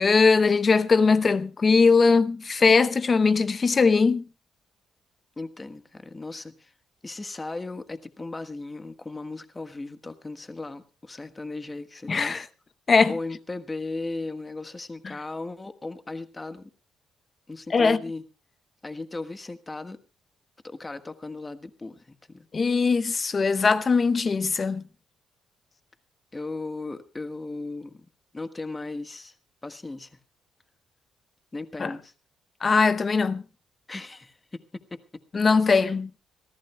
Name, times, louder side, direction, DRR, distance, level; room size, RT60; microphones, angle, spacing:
voice 1, 0.0-4.2 12.1-12.4 12.9-13.1 17.7-18.0 22.5-24.8 31.8-31.9 32.6-33.4 35.3-36.1, left 4 dB, 35° left, 0.8 m, -20 dB
voice 2, 5.4-6.7 7.0-12.5 13.1-16.7 17.5-18.2 18.8-20.0 20.6-22.5 26.3-28.1 28.3-29.3 29.6-30.2 31.5-32.1 33.9-35.0 35.6-35.9, left 2 dB, 20° left, 1.4 m, -37 dB
26.5 x 14.5 x 2.3 m
cardioid pair, 90°, 0 cm